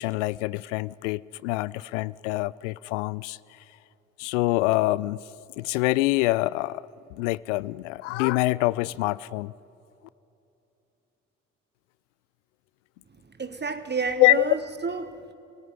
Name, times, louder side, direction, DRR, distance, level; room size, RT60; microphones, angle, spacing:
voice 1, 0.0-3.4 4.2-5.2 5.6-6.9 7.2-9.5 14.2-14.5, left 20 dB, 70° left, 21 dB, 0.5 m, -25 dB
voice 2, 13.4-15.3, right 4 dB, 25° right, 10 dB, 1.6 m, -30 dB
27.0 x 18.0 x 9.6 m, 2.8 s
figure-of-eight pair, 45°, 38 cm